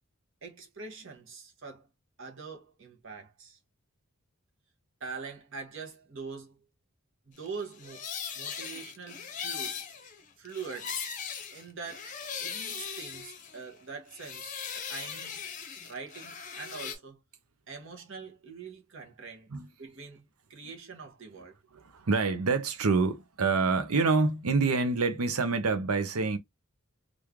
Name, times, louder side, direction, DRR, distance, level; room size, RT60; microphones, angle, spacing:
voice 1, 0.4-1.9 2.2-3.6 5.0-6.6 7.3-8.1 8.3-9.8 10.4-11.1 11.5-15.4 15.8-17.2 17.7-21.6, right 5 dB, 55° right, 0.9 m, -44 dB
sound 1, 7.6-13.8 14.1-17.0, left 7 dB, 35° left, 0.7 m, -39 dB
voice 2, 21.7-26.4, right 4 dB, 80° right, 0.7 m, -27 dB
3.1 x 2.4 x 3.5 m
head